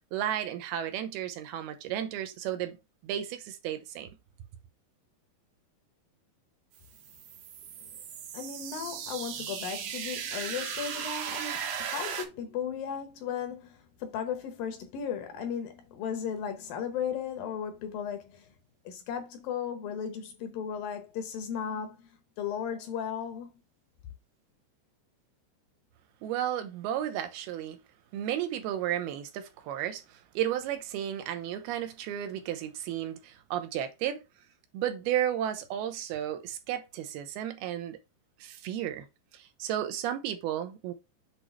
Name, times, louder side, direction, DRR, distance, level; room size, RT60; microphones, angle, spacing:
voice 1, 0.1-2.8 3.0-4.1 26.2-27.8 28.1-34.2 34.7-38.0 38.4-39.1 39.3-40.9, right 11 dB, 85° right, 2.6 m, -33 dB
sound 1, 6.8-12.3, right 8 dB, 70° right, 2.2 m, -37 dB
voice 2, 8.3-18.5 18.9-23.5, left 7 dB, 70° left, 2.3 m, -36 dB
8.1 x 3.1 x 4.4 m
omnidirectional pair, 4.6 m